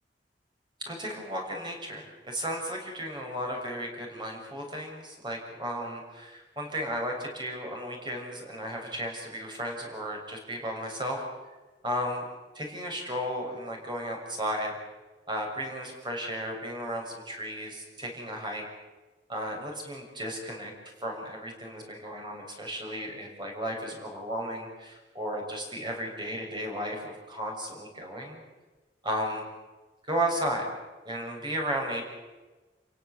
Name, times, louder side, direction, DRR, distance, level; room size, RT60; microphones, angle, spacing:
voice 1, 0.9-11.2 11.8-12.3 12.5-14.7 15.3-18.6 19.3-20.7 21.0-28.4 29.0-29.5 30.1-30.7 31.0-32.0, equal, 25° right, 1 dB, 6.7 m, -34 dB
29.5 x 17.0 x 8.4 m, 1.2 s
head